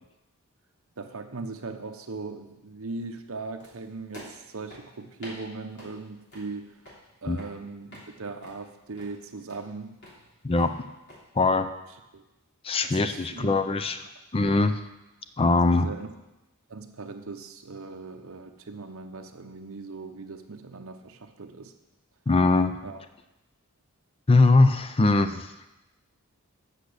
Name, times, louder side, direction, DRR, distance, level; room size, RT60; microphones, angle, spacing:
voice 1, 1.0-6.8 7.2-10.0 12.1-12.2 12.8-13.6 15.7-16.1 16.7-21.7 22.8-23.1, right 3 dB, 65° right, 6 dB, 0.8 m, -39 dB
sound 1, 3.6-11.2, equal, 50° left, 3.2 m, -50 dB
voice 2, 10.4-10.8 11.3-11.7 12.6-14.0 14.3-14.8 15.4-15.9 22.3-22.8 24.3-25.5, left 3 dB, 25° left, 10 dB, 0.5 m, -21 dB
8.3 x 6.6 x 6.6 m, 0.98 s
head